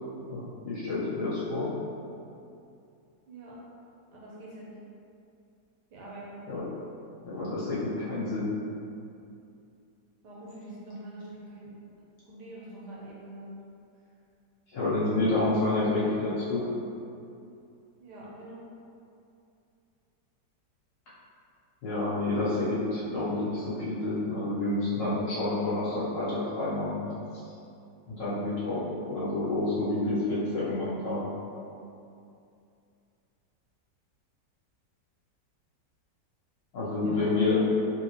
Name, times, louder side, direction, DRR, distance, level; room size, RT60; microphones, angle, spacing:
voice 1, 0.3-1.7 6.5-6.6 7.2-8.5 14.7-16.6 21.8-27.1 28.1-31.3 36.7-37.6, left 2 dB, 75° left, -10 dB, 2.0 m, -29 dB
voice 2, 3.3-3.6 4.1-4.7 5.9-6.4 10.2-11.7 12.2-13.5 18.0-18.6 36.9-37.4, right 1 dB, 70° right, -6 dB, 1.5 m, -44 dB
4.0 x 3.7 x 3.1 m, 2.6 s
omnidirectional pair, 1.9 m